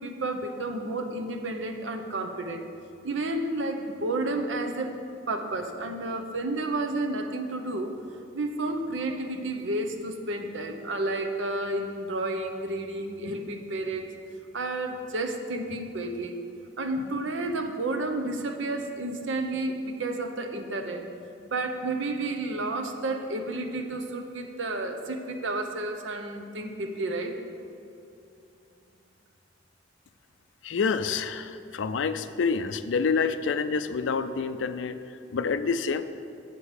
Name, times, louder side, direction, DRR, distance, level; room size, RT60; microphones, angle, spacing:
voice 1, 0.0-2.7 3.0-4.9 5.3-8.0 8.3-14.1 14.5-16.4 16.8-21.1 21.5-27.4, right 2 dB, 75° right, 5 dB, 0.7 m, -31 dB
voice 2, 30.6-35.0 35.3-36.0, left 5 dB, 70° left, 11 dB, 0.4 m, -27 dB
8.3 x 5.2 x 6.5 m, 2.7 s
head